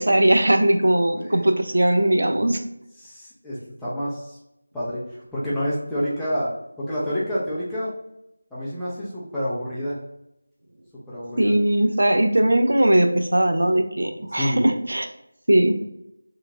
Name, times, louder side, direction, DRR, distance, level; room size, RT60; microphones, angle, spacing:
voice 1, 0.0-2.6 11.4-15.1 15.5-15.8, right 1 dB, 75° right, 6 dB, 0.4 m, -19 dB
voice 2, 1.2-1.5 3.0-4.4 4.7-6.5 6.8-7.9 8.5-10.0 11.1-11.6 14.3-14.6, equal, 5° left, -12 dB, 0.5 m, -28 dB
3.0 x 2.3 x 3.6 m, 0.82 s
figure-of-eight pair, 175°, 0 cm